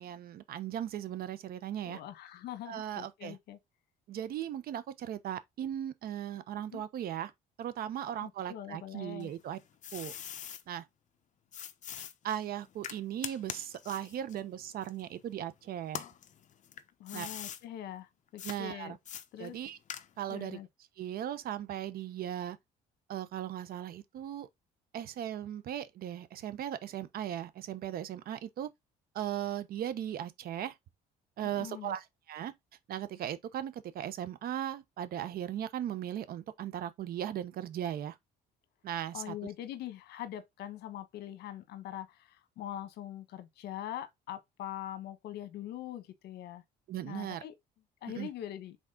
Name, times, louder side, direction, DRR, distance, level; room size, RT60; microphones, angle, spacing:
voice 1, 0.0-2.0 2.7-3.4 4.1-7.3 7.6-9.6 9.9-10.1 10.7-10.9 12.2-16.0 17.1-17.3 18.4-19.0 19.4-19.8 20.2-20.6 21.0-22.6 23.1-24.5 24.9-28.7 29.1-30.7 31.4-32.5 32.9-38.2 38.8-39.3 46.9-47.4 48.1-48.3, right 11 dB, 60° right, 1.0 m, -37 dB
voice 2, 1.8-3.6 6.7-6.8 8.2-9.3 17.0-19.0 19.3-19.6 20.3-20.7 31.4-32.0 39.1-46.6 47.0-47.5 48.0-48.8, left 11 dB, 75° left, 1.3 m, -43 dB
sound 1, 9.2-10.6 11.5-15.4 15.8-17.6 18.4-18.6 19.1-20.4, left 9 dB, 45° left, 0.8 m, -43 dB
6.3 x 4.0 x 3.8 m
cardioid pair, 110°, 17 cm